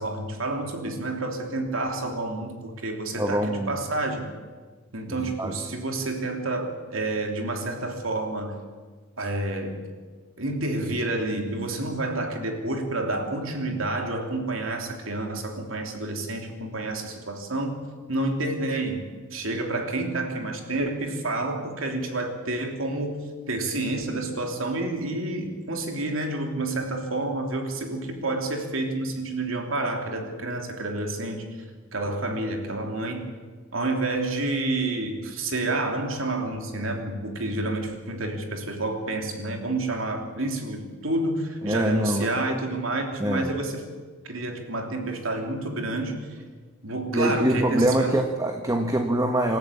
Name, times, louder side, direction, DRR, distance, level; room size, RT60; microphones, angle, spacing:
voice 1, 0.0-4.3 4.9-8.6 9.2-9.8 10.4-31.4 31.9-33.3 33.7-43.8 44.2-46.4 46.8-48.1, right 2 dB, 70° right, 3 dB, 3.3 m, -29 dB
voice 2, 3.1-3.7 5.1-5.5 41.6-42.5 43.2-43.5 47.1-49.6, right 1 dB, 15° right, 4 dB, 1.5 m, -24 dB
26.5 x 13.5 x 8.6 m, 1.4 s
head